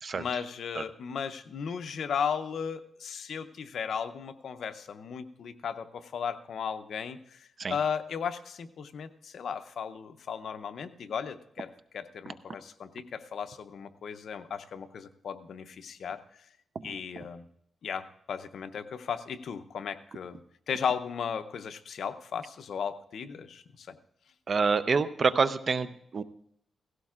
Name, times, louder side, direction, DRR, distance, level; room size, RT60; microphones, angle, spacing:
voice 1, 0.1-16.2 16.8-17.4 17.8-20.4 20.7-23.9, left 7 dB, 70° left, 10 dB, 0.7 m, -36 dB
voice 2, 24.5-26.2, right 5 dB, 45° right, 13 dB, 0.6 m, -27 dB
17.0 x 16.0 x 2.4 m, 0.70 s
cardioid pair, 120°, 0 cm